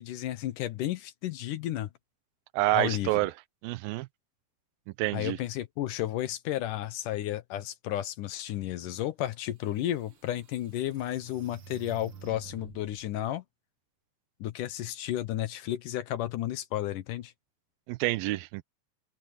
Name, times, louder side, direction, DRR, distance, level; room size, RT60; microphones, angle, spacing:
voice 1, 0.0-1.9 2.7-3.1 5.1-13.4 14.4-17.3, left 13 dB, 70° left, 2.3 m, -32 dB
voice 2, 2.5-3.3 3.6-4.1 5.0-5.4 17.9-18.6, right 17 dB, 85° right, 2.4 m, -28 dB
sound 1, 9.3-9.4 9.9-13.0, right 7 dB, 65° right, 1.3 m, -50 dB
open air
omnidirectional pair, 4.2 m